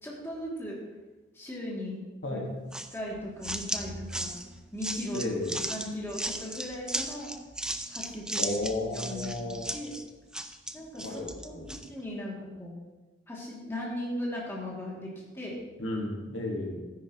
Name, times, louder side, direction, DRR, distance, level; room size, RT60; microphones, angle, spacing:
voice 1, 0.0-0.8 1.3-2.0 2.3-2.4 2.9-4.3 4.7-5.2 5.7-7.3 7.9-8.5 8.9-9.4 9.7-9.9 10.7-12.7 13.3-15.6, left 1 dB, 15° left, -5 dB, 2.5 m, -37 dB
sound 1, 2.7-11.9, right 1 dB, 5° right, 0.5 m, -36 dB
voice 2, 5.1-5.6 8.4-9.6 11.0-11.8 15.8-16.8, left 2 dB, 80° left, 0 dB, 1.8 m, -33 dB
12.5 x 10.5 x 3.0 m, 1.2 s
head